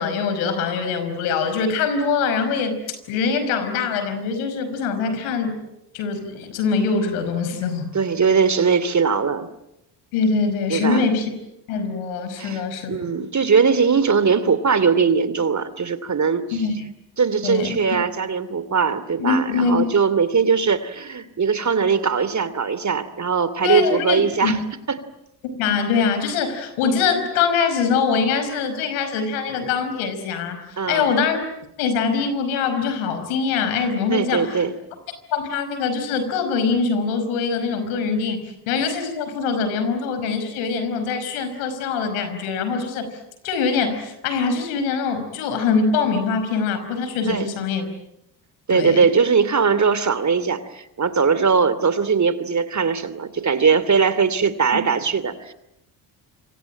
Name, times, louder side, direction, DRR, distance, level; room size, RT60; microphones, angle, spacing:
voice 1, 0.0-5.6 5.9-7.9 10.1-11.3 11.7-13.0 16.5-16.7 17.4-17.8 19.2-19.9 23.6-24.7 25.6-31.4 31.8-34.6 35.3-43.1 43.4-47.9 48.7-49.1, left 5 dB, 80° left, 9 dB, 5.3 m, -23 dB
voice 2, 7.9-9.5 10.7-11.1 12.4-12.6 12.9-16.6 17.2-24.6 24.9-25.0 30.8-31.1 34.1-34.7 47.3-47.5 48.7-55.5, right 5 dB, 35° right, 15 dB, 2.8 m, -20 dB
27.0 x 24.5 x 8.8 m, 0.83 s
hypercardioid pair, 60°, 49 cm